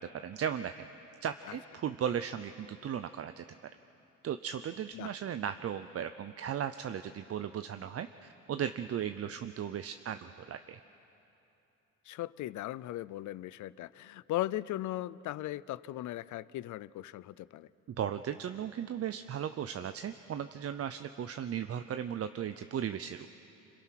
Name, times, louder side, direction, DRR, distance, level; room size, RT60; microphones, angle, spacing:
voice 1, 0.2-0.9 1.2-3.4 4.2-10.8 17.9-23.3, right 9 dB, 50° right, 10 dB, 0.7 m, -36 dB
voice 2, 12.1-17.7, left 15 dB, 75° left, 19 dB, 0.6 m, -38 dB
26.5 x 26.5 x 6.0 m, 2.9 s
cardioid pair, 90°, 30 cm